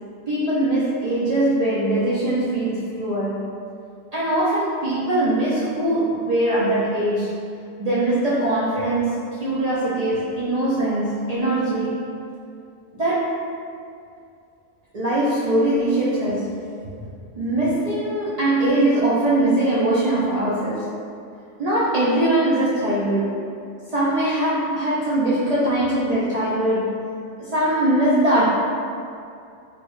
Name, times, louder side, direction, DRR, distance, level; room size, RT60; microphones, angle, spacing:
voice 1, 0.3-3.4 4.1-7.4 7.8-12.1 12.9-13.4 14.9-16.7 17.3-21.0 21.6-23.4 23.9-27.1 27.4-28.4, right 1 dB, 90° right, -9 dB, 0.3 m, -21 dB
3.6 x 2.2 x 2.9 m, 2.4 s
omnidirectional pair, 1.3 m